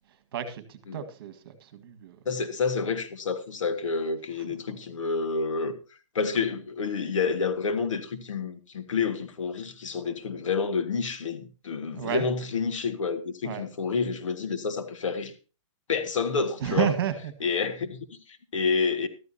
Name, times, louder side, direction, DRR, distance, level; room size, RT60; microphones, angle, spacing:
voice 1, 0.1-2.2 4.5-4.6 11.9-12.3 13.4-13.7 16.6-17.3, right 10 dB, 50° right, 1.8 m, -31 dB
voice 2, 2.3-5.7 6.1-15.3 15.9-16.9 17.4-19.1, left 5 dB, 85° left, 1.9 m, -29 dB
14.0 x 13.0 x 2.8 m
hypercardioid pair, 165°, 16 cm